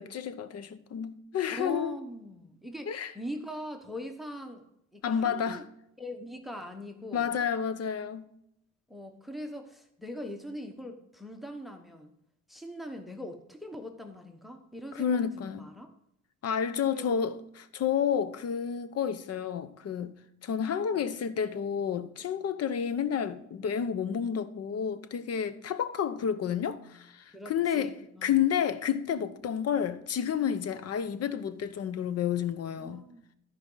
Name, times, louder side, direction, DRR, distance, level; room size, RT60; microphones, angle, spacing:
voice 1, 0.0-2.0 2.9-3.1 5.0-5.6 7.1-8.3 14.9-15.6 16.4-20.1 20.4-27.9 28.2-33.0, left 8 dB, 55° left, 0.8 m, -30 dB
voice 2, 1.5-4.7 4.9-5.6 6.0-7.3 8.9-12.1 12.5-15.9 16.9-17.1 20.9-21.1 22.2-22.3 27.3-28.4 32.8-33.3, equal, ahead, 1.1 m, -42 dB
13.0 x 5.1 x 3.9 m
cardioid pair, 90°, 30 cm